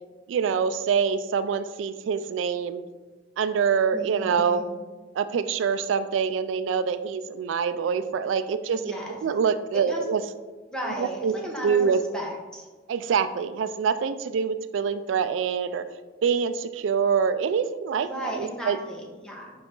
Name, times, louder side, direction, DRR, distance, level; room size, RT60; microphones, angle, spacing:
voice 1, 0.3-2.8 3.4-4.6 5.1-8.8 9.1-10.2 11.0-11.3 11.6-12.0 12.9-15.8 16.2-18.8, right 6 dB, 80° right, 11 dB, 0.3 m, -25 dB
voice 2, 3.9-4.7 8.7-9.2 9.9-10.0 10.7-12.7 18.0-19.5, equal, 5° left, -2 dB, 1.1 m, -35 dB
5.6 x 4.6 x 3.8 m, 1.3 s
head